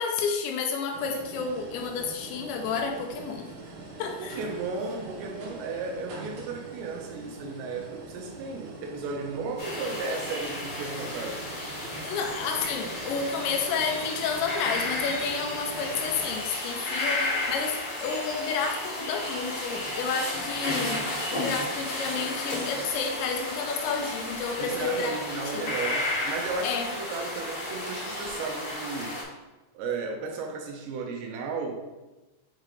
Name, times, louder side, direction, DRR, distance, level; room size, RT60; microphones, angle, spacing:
voice 1, 0.0-3.5 4.0-4.4 12.0-21.0 21.3-25.2 25.5-25.6 26.6-27.0, left 5 dB, 80° left, 3 dB, 2.8 m, -30 dB
sound 1, 0.9-16.3, right 3 dB, 65° right, 2.5 m, -43 dB
voice 2, 4.2-11.5 21.3-21.6 24.6-29.2 29.7-31.8, right 4 dB, 80° right, 2 dB, 2.7 m, -34 dB
sound 2, 9.6-29.2, left 2 dB, 45° left, 1.7 m, -33 dB
6.5 x 5.0 x 3.2 m, 1.1 s
omnidirectional pair, 5.3 m